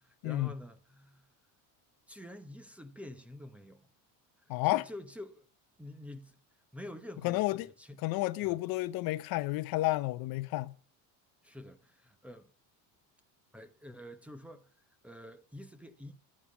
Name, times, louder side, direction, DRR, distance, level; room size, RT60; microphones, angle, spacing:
voice 1, 0.0-1.3 2.1-3.9 4.4-5.5 5.8-6.4 6.7-8.1 8.4-8.6 11.4-12.5 13.5-14.7 15.0-16.1, left 1 dB, 5° right, 0.8 m, -48 dB
voice 2, 4.5-4.8 7.2-7.7 8.0-10.7, left 18 dB, 60° left, 0.7 m, -31 dB
13.5 x 8.5 x 5.9 m
cardioid pair, 150°, 40 cm